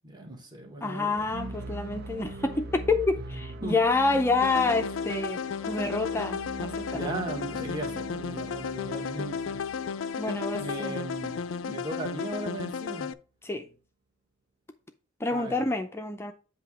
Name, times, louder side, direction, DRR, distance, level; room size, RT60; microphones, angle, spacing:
voice 1, 0.0-1.3 3.2-3.8 6.9-9.6 10.6-13.1 15.3-15.6, right 2 dB, 20° right, 1.3 m, -37 dB
voice 2, 0.8-5.4 5.6-7.1 10.2-11.0 13.4-13.7 15.2-16.3, left 3 dB, 10° left, 0.4 m, -28 dB
sound 1, 1.1-11.2, right 2 dB, 55° right, 0.7 m, -42 dB
sound 2, 4.4-13.1, left 6 dB, 75° left, 0.4 m, -34 dB
7.9 x 2.8 x 6.0 m
head